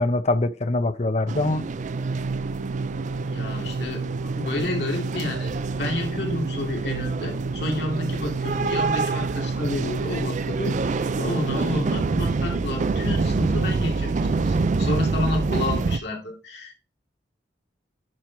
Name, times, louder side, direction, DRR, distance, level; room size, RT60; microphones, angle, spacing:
voice 1, 0.0-1.6, left 2 dB, 35° left, 0.6 m, -23 dB
sound 1, 1.3-16.0, right 4 dB, 40° right, 0.4 m, -27 dB
Organ, 1.7-12.6, right 3 dB, 80° right, 0.6 m, -32 dB
voice 2, 3.3-16.8, left 2 dB, 60° left, 2.6 m, -30 dB
10.5 x 4.5 x 4.6 m
head